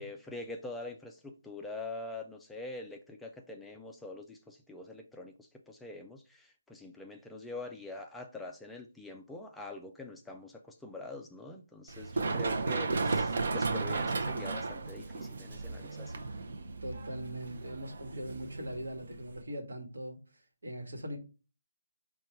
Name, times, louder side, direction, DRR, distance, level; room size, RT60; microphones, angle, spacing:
voice 1, 0.0-16.2, left 2 dB, 5° left, 0.3 m, -44 dB
Run, 11.9-19.4, right 3 dB, 55° right, 0.6 m, -34 dB
voice 2, 16.8-20.2 20.6-21.2, equal, 75° right, 1.2 m, -41 dB
4.4 x 2.3 x 4.4 m
figure-of-eight pair, 155°, 0 cm